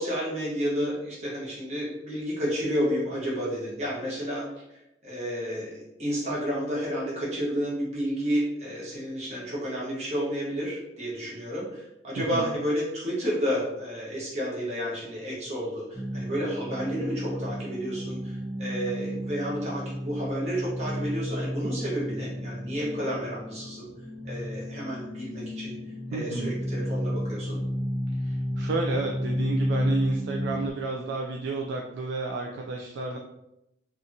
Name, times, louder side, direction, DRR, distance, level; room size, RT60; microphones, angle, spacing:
voice 1, 0.0-23.9 24.2-25.8 26.1-27.6, equal, 40° right, -6 dB, 1.0 m, -31 dB
voice 2, 12.2-12.5 26.1-26.5 28.2-33.2, right 3 dB, 80° right, 1 dB, 0.3 m, -31 dB
sound 1, 15.9-30.7, equal, ahead, 0.4 m, -32 dB
2.7 x 2.4 x 2.6 m, 0.86 s
head